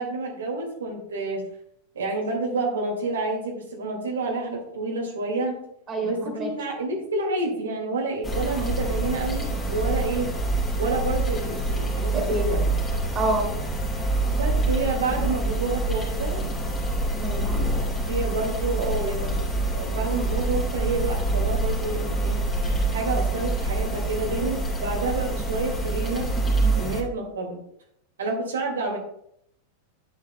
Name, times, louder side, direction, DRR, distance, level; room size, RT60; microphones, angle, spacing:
voice 1, 0.0-1.4 1.9-5.6 6.0-10.3 10.8-12.7 14.3-16.5 18.1-22.4 22.9-26.3 26.7-27.6 28.2-29.0, right 3 dB, 65° right, -1 dB, 2.1 m, -29 dB
voice 2, 5.9-6.5 12.3-12.4 13.1-13.5 17.1-17.7, right 1 dB, 25° right, 3 dB, 2.8 m, -28 dB
sound 1, 8.2-27.0, right 2 dB, 15° left, 2.8 m, -26 dB
12.0 x 8.4 x 2.2 m, 0.72 s
figure-of-eight pair, 90°, 0 cm